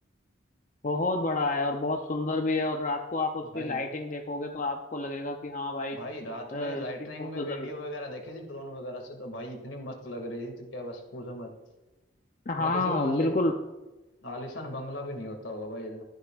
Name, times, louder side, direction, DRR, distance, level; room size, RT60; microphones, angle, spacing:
voice 1, 0.8-6.0 6.5-6.9 7.2-7.7 12.5-13.5, left 2 dB, 40° left, 3 dB, 0.6 m, -29 dB
voice 2, 5.9-11.5 12.6-13.3 14.2-16.0, left 1 dB, 75° left, 3 dB, 2.2 m, -38 dB
13.0 x 11.5 x 2.5 m, 1.1 s
head